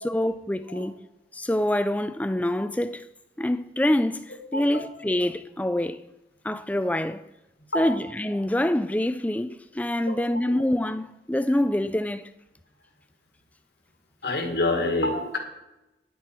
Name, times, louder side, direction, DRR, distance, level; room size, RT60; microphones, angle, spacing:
voice 1, 0.0-1.0 1.3-3.0 3.4-6.0 6.4-7.2 7.7-12.3, left 1 dB, 10° left, 0.4 m, -26 dB
voice 2, 4.5-4.9 7.7-8.0 10.1-10.3 14.2-15.4, left 2 dB, 60° left, 1.8 m, -27 dB
10.5 x 10.0 x 4.5 m
head